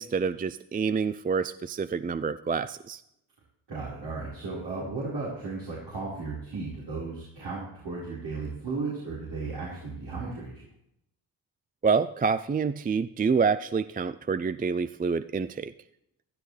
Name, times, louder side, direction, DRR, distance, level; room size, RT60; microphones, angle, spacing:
voice 1, 0.0-3.0 11.8-15.7, right 5 dB, 20° right, 14 dB, 0.4 m, -27 dB
voice 2, 3.7-10.5, right 3 dB, 65° right, -7 dB, 4.5 m, -35 dB
15.5 x 12.5 x 3.3 m, 0.79 s
cardioid pair, 55°, 44 cm